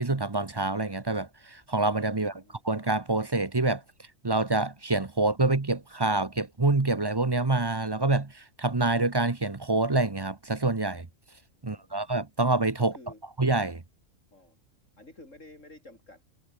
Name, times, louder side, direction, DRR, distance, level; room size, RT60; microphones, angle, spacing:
voice 1, 0.0-3.8 4.2-11.1 11.6-12.9 13.4-13.8, right 2 dB, 20° right, 0.9 m, -26 dB
voice 2, 2.1-2.6 11.6-12.1 12.8-13.2 14.3-14.6 15.0-16.4, left 2 dB, 65° left, 7.5 m, -52 dB
omnidirectional pair, 1.4 m